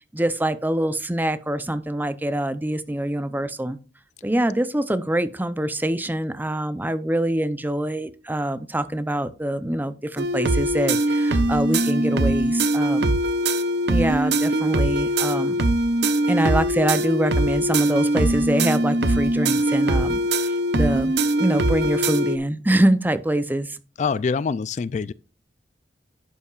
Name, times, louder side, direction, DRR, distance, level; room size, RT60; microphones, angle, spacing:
voice 1, 0.1-3.8 4.2-13.1 13.9-15.6 16.3-21.1 21.4-23.8, right 1 dB, 10° right, 0.6 m, -24 dB
sound 1, 10.2-22.4, right 1 dB, 70° right, 0.9 m, -22 dB
voice 2, 24.0-25.1, left 5 dB, 40° left, 0.3 m, -25 dB
11.0 x 8.4 x 2.4 m
head